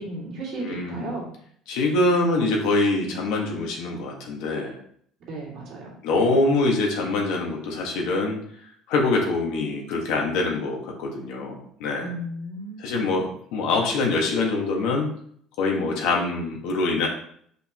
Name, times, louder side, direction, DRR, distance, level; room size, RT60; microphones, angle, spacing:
voice 1, 0.0-1.3 5.3-5.9 12.0-13.1, right 2 dB, 50° right, -4 dB, 2.4 m, -35 dB
voice 2, 0.6-1.1 1.7-4.7 6.0-8.4 8.9-12.1 12.8-15.1 15.6-17.1, left 2 dB, 75° left, 0 dB, 1.7 m, -24 dB
6.7 x 5.2 x 3.1 m, 0.62 s
cardioid pair, 165°, 0 cm